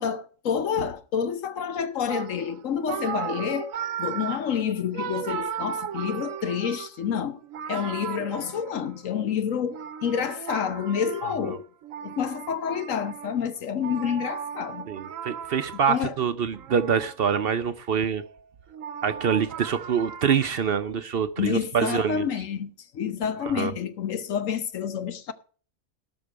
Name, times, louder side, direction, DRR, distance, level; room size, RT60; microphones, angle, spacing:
voice 1, 0.0-3.7 4.0-7.4 7.7-11.6 12.0-14.9 15.9-16.1 21.4-25.3, left 8 dB, 75° left, 1.3 m, -28 dB
sound 1, 2.1-9.1 9.7-16.0 16.5-17.7 18.1-20.4, right 8 dB, 85° right, 1.2 m, -36 dB
voice 2, 11.2-11.6 14.9-18.2 19.0-22.2 23.5-23.7, right 7 dB, 55° right, 0.8 m, -25 dB
18.0 x 6.1 x 4.6 m
omnidirectional pair, 1.4 m